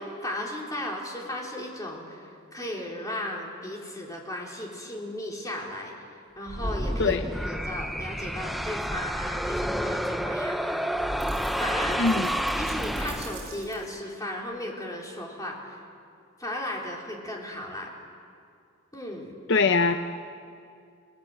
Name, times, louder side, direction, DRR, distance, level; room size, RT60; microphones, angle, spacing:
voice 1, 0.0-5.9 6.4-7.2 7.5-10.9 11.6-12.0 12.6-15.8 16.4-17.9 18.9-19.3, left 1 dB, 15° left, -2 dB, 3.9 m, -35 dB
sound 1, 6.5-13.7, equal, ahead, 0.5 m, -30 dB
sound 2, 11.2-14.0, right 7 dB, 55° right, 7.2 m, -48 dB
voice 2, 12.0-12.4 19.5-20.0, left 4 dB, 60° left, 8 dB, 0.7 m, -22 dB
29.5 x 19.0 x 7.9 m, 2.3 s
head